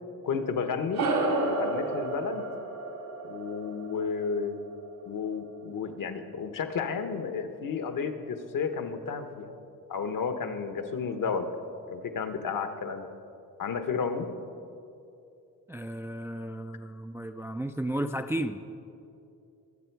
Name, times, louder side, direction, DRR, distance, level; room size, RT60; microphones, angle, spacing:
voice 1, 0.2-1.0 1.4-2.4 3.2-4.6 5.1-9.5 9.9-11.5 11.9-13.1 13.6-14.3, left 5 dB, 65° left, 8 dB, 1.1 m, -32 dB
sound 1, 0.9-5.7, right 2 dB, 80° right, 2.6 m, -32 dB
voice 2, 15.7-18.6, right 1 dB, 10° right, 7 dB, 0.3 m, -33 dB
22.0 x 7.8 x 4.6 m, 2.6 s
cardioid pair, 115°, 35 cm